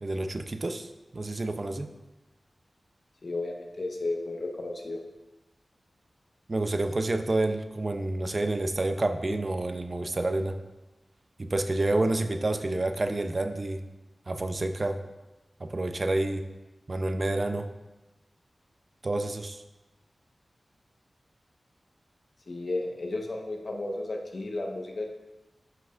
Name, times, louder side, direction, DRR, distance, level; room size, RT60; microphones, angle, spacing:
voice 1, 0.0-1.9 6.5-10.5 11.4-13.8 14.3-15.0 15.6-16.4 16.9-17.7 19.0-19.6, right 2 dB, 45° right, 8 dB, 0.5 m, -29 dB
voice 2, 3.2-5.0 22.5-25.1, left 2 dB, 65° left, 1 dB, 1.1 m, -33 dB
11.0 x 5.7 x 2.5 m, 1.1 s
wide cardioid pair, 70°, 0 cm